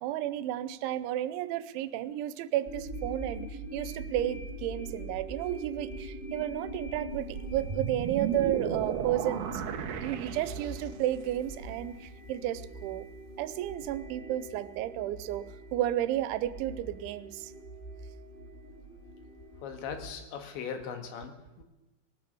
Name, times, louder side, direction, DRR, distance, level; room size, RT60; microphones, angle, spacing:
voice 1, 0.0-9.6 10.0-13.1 13.4-17.5, right 13 dB, 85° right, 14 dB, 3.2 m, -32 dB
sound 1, 2.7-20.1, right 1 dB, 20° left, 1.3 m, -43 dB
sound 2, 7.1-11.1, right 8 dB, 70° right, 1.9 m, -35 dB
voice 2, 19.6-21.6, left 6 dB, 75° left, 6 dB, 4.0 m, -39 dB
20.5 x 19.0 x 6.9 m, 1.0 s
omnidirectional pair, 5.3 m